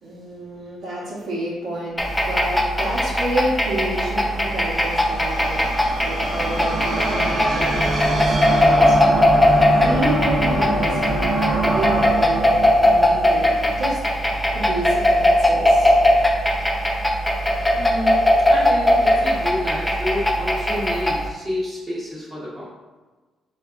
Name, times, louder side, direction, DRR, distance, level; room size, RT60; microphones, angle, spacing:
voice 1, 0.0-9.0 9.7-14.0 14.5-15.9, right 1 dB, 75° right, -9 dB, 0.9 m, -29 dB
sound 1, 2.0-21.3, left 1 dB, 10° left, 0.4 m, -19 dB
sound 2, 3.8-14.1, right 1 dB, 50° right, 0.7 m, -25 dB
voice 2, 17.7-22.7, left 1 dB, 10° right, -9 dB, 0.8 m, -29 dB
4.3 x 2.4 x 2.4 m, 1.3 s
cardioid pair, 90°, 0 cm